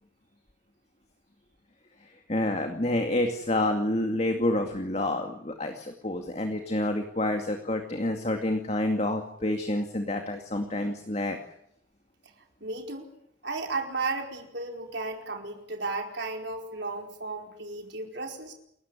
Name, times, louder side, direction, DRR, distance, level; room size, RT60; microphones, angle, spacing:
voice 1, 2.3-11.4, left 1 dB, 35° left, 5 dB, 2.3 m, -28 dB
voice 2, 12.6-13.1 13.4-18.5, right 3 dB, 60° right, 3 dB, 4.8 m, -34 dB
29.0 x 14.5 x 9.9 m, 0.73 s
head